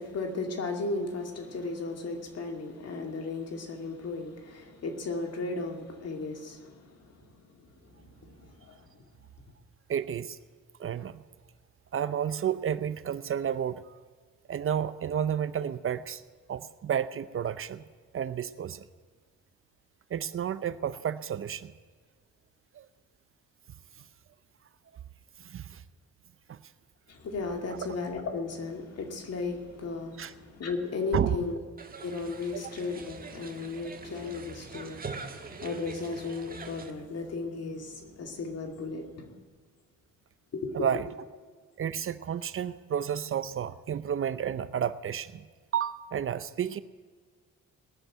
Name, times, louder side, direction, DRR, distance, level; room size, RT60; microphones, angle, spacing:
voice 1, 0.0-7.2 7.9-8.8 27.1-31.6 32.0-39.4 40.5-40.8, left 3 dB, 55° left, 2.5 m, -35 dB
voice 2, 9.9-10.4 10.8-11.2 11.9-13.9 14.5-16.2 16.5-17.8 18.1-18.9 20.1-21.7 22.7-22.9 25.4-25.8 26.5-26.6 27.7-27.8 30.2-30.3 31.1-31.4 32.5-32.6 40.7-41.1 41.8-45.4 45.7-46.8, right 9 dB, 45° right, 0.6 m, -31 dB
sound 1, 31.8-36.9, right 4 dB, 30° right, 1.4 m, -43 dB
19.0 x 6.8 x 9.1 m
cardioid pair, 90°, 30 cm